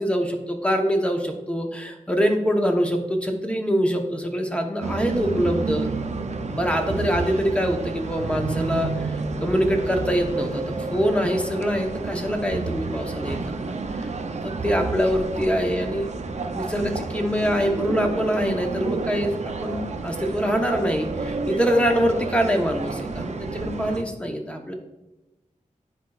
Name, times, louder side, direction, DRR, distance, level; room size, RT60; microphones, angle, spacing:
voice 1, 0.0-5.9 6.5-13.6 14.0-14.1 14.4-16.1 16.5-24.7, equal, 10° left, 3 dB, 0.9 m, -24 dB
sound 1, 4.8-24.0, right 4 dB, 55° right, 0.5 m, -30 dB
10.0 x 4.2 x 2.4 m, 1.0 s
wide cardioid pair, 70°, 13 cm